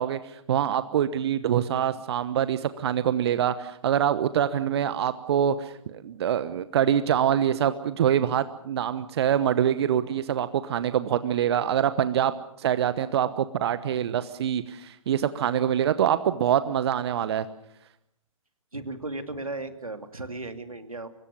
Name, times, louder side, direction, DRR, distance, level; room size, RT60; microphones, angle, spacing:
voice 1, 0.0-12.3 12.6-17.5, right 9 dB, 50° right, 13 dB, 1.1 m, -25 dB
voice 2, 18.7-21.1, right 2 dB, 85° right, 8 dB, 2.6 m, -35 dB
25.0 x 21.5 x 6.9 m, 0.76 s
figure-of-eight pair, 125°, 18 cm